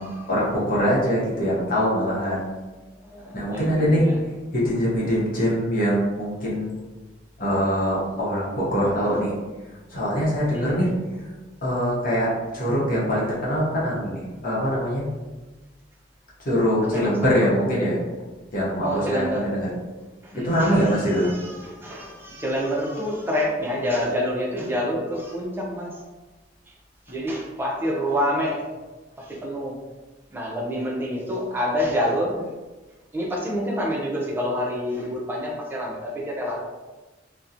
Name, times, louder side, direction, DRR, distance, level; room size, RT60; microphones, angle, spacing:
voice 1, 0.0-2.5 3.3-4.1 4.5-6.7 7.4-9.3 9.9-10.9 11.6-15.1 16.4-18.0 18.5-19.7 20.4-21.3, equal, 50° left, -6 dB, 0.9 m, -23 dB
voice 2, 3.0-4.2 10.5-10.7 16.9-17.5 18.8-19.5 20.2-25.9 27.1-28.6 29.2-29.7 30.3-32.4 33.1-36.6, equal, 10° right, -3 dB, 0.5 m, -27 dB
2.8 x 2.1 x 2.4 m, 1.2 s
head